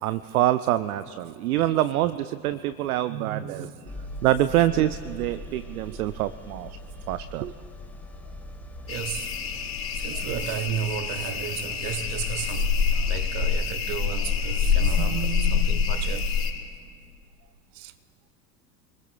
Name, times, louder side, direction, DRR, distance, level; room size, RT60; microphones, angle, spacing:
voice 1, 0.0-3.7 4.2-6.8 7.1-7.5, right 13 dB, 60° right, 0.5 m, -25 dB
voice 2, 3.1-3.9 8.9-9.3 9.9-16.4 17.7-17.9, right 9 dB, 40° right, 1.0 m, -33 dB
sound 1, 3.9-13.2, left 1 dB, 5° left, 1.2 m, -42 dB
sound 2, 8.9-16.5, left 6 dB, 25° left, 3.4 m, -26 dB
27.0 x 21.0 x 2.3 m
figure-of-eight pair, 85°, 50 cm